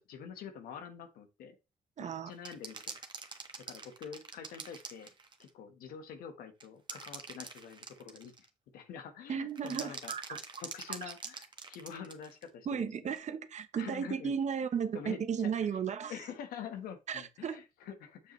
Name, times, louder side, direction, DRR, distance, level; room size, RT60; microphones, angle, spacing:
voice 1, 0.0-1.6 2.0-3.0 3.6-5.1 5.4-8.5 8.7-13.2 13.8-14.3 14.9-15.8 16.1-18.3, left 7 dB, 90° left, 1.4 m, -46 dB
voice 2, 2.0-2.3 9.3-10.4 12.7-16.1 17.1-17.6, right 7 dB, 55° right, 0.9 m, -35 dB
sound 1, 2.4-5.5 6.6-8.5 9.5-12.5 13.2-13.3, right 4 dB, 30° right, 1.4 m, -45 dB
7.5 x 6.6 x 3.2 m
cardioid pair, 90°, 15 cm